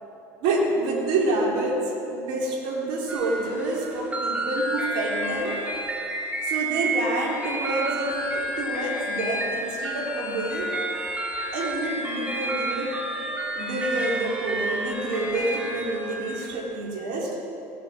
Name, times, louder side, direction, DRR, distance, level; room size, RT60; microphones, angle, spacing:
voice 1, 0.4-5.6 6.4-10.7 11.5-12.9 13.2-17.3, right 2 dB, 70° right, -2 dB, 3.5 m, -28 dB
sound 1, 3.1-16.6, right 1 dB, 15° right, 3.3 m, -30 dB
18.0 x 9.3 x 7.4 m, 2.9 s
supercardioid pair, 85°, 9 cm